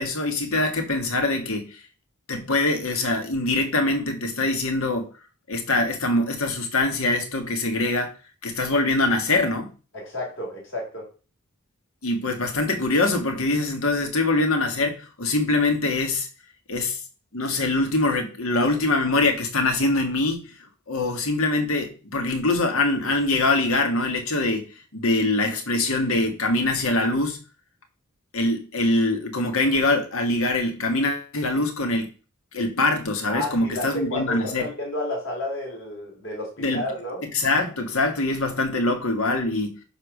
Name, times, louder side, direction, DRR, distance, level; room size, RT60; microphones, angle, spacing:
voice 1, 0.0-1.8 2.3-5.1 5.5-8.1 8.4-9.7 12.0-16.3 16.7-17.0 17.3-20.5 20.9-27.4 28.3-32.1 32.5-34.7 36.6-36.8 37.3-39.8, left 2 dB, 70° left, 1.7 m, -23 dB
voice 2, 9.9-11.1 33.3-37.2, left 1 dB, 55° left, 4.6 m, -31 dB
10.0 x 3.5 x 6.4 m
head